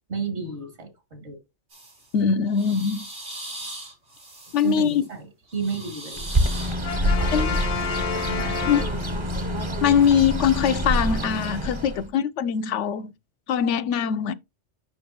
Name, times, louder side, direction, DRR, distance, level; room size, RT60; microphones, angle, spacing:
voice 1, 0.1-1.4 4.6-5.2 5.5-6.3 7.0-7.6 8.3-8.5, right 5 dB, 70° right, 2.5 m, -32 dB
sound 1, 1.7-2.1 2.5-5.0 5.5-6.8, right 1 dB, 90° right, 3.2 m, -39 dB
voice 2, 2.1-3.1 4.5-5.0 7.0-7.6 8.7-8.9 9.8-13.1 13.5-14.3, left 7 dB, 85° left, 0.9 m, -22 dB
Bird, 6.2-12.1, equal, 30° right, 0.7 m, -26 dB
Brass instrument, 6.8-9.5, left 6 dB, 45° left, 0.5 m, -30 dB
7.8 x 5.8 x 2.9 m
omnidirectional pair, 1.2 m